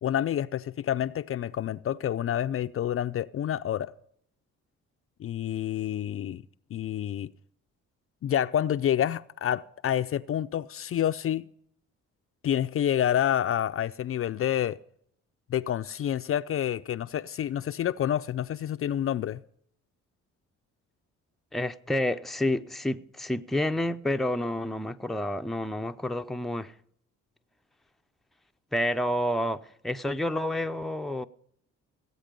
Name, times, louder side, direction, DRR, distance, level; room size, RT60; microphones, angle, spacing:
voice 1, 0.0-3.9 5.2-6.4 6.7-7.3 8.2-11.5 12.4-14.8 15.5-19.4, left 10 dB, 45° left, 0.5 m, -28 dB
voice 2, 21.5-26.7 28.7-31.3, left 1 dB, ahead, 0.6 m, -29 dB
18.0 x 8.2 x 5.3 m
cardioid pair, 90°, 30 cm